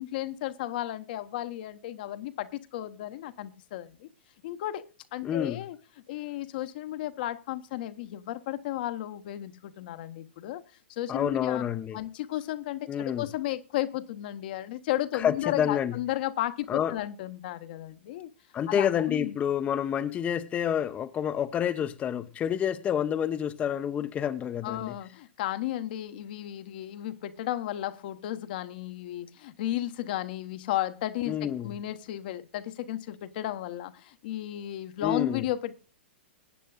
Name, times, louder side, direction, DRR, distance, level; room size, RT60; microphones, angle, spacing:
voice 1, 0.0-4.1 4.4-5.8 6.1-10.6 10.9-11.6 11.9-18.3 18.7-19.4 24.6-35.8, left 14 dB, 50° left, 1.0 m, -34 dB
voice 2, 5.2-5.6 11.1-12.0 12.9-13.3 15.1-16.0 16.7-17.0 18.5-24.9 31.3-31.7 35.0-35.4, left 9 dB, 20° left, 0.7 m, -28 dB
21.0 x 9.3 x 2.4 m
figure-of-eight pair, 110°, 6 cm